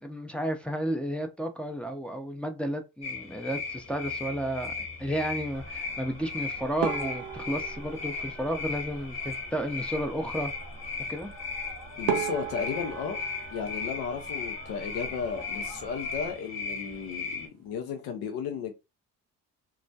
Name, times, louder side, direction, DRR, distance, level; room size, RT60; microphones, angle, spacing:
voice 1, 0.0-4.7 5.0-10.5 11.1-11.3, equal, 5° left, 0.5 m, -32 dB
sound 1, 3.0-17.5, left 4 dB, 45° left, 1.0 m, -37 dB
sound 2, 5.5-16.3, right 1 dB, 30° right, 0.7 m, -46 dB
sound 3, 6.8-9.3 11.5-11.6 12.1-14.8 15.1-15.9 16.2-16.4 16.7-16.8 17.4-17.7, right 9 dB, 80° right, 0.5 m, -36 dB
voice 2, 12.0-13.2 13.5-18.7, left 6 dB, 75° left, 0.6 m, -34 dB
2.3 x 2.1 x 2.6 m
supercardioid pair, 60°, 37 cm